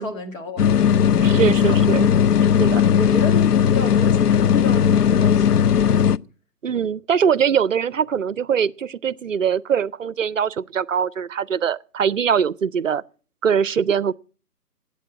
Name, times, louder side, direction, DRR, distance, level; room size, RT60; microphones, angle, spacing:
voice 1, 0.0-2.1 3.0-6.2, left 3 dB, 55° left, 2.5 m, -32 dB
sound 1, 0.6-6.2, left 8 dB, 75° left, 0.5 m, -17 dB
voice 2, 1.2-2.1 2.6-2.8 6.6-13.0 13.4-14.1, right 7 dB, 55° right, 0.6 m, -22 dB
13.0 x 8.5 x 7.4 m
figure-of-eight pair, 150°, 47 cm